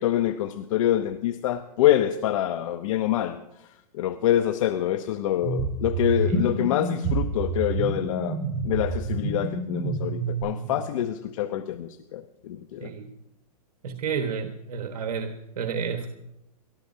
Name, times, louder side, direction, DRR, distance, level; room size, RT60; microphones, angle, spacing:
voice 1, 0.0-3.4 3.9-8.4 8.6-12.9, left 12 dB, 55° left, 10 dB, 0.8 m, -26 dB
sound 1, 5.4-10.4, right 3 dB, 30° right, 6.2 m, -28 dB
voice 2, 13.8-16.1, right 6 dB, 70° right, 5 dB, 1.4 m, -31 dB
29.5 x 13.5 x 2.7 m, 0.90 s
hypercardioid pair, 135°, 20 cm